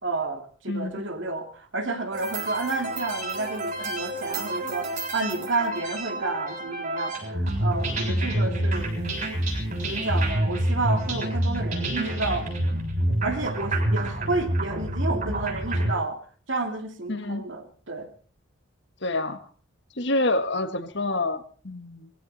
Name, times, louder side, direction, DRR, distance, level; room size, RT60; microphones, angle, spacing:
voice 1, 0.0-8.9 9.8-12.5 13.2-16.2 16.5-18.1, right 3 dB, 60° right, 5 dB, 2.8 m, -30 dB
voice 2, 0.7-1.0 8.1-8.4 17.1-17.5 19.0-19.4 19.9-22.1, left 2 dB, 55° left, 9 dB, 1.6 m, -28 dB
sound 1, 2.1-15.9, right 1 dB, 40° right, 7.1 m, -28 dB
20.5 x 16.5 x 4.3 m, 0.41 s
head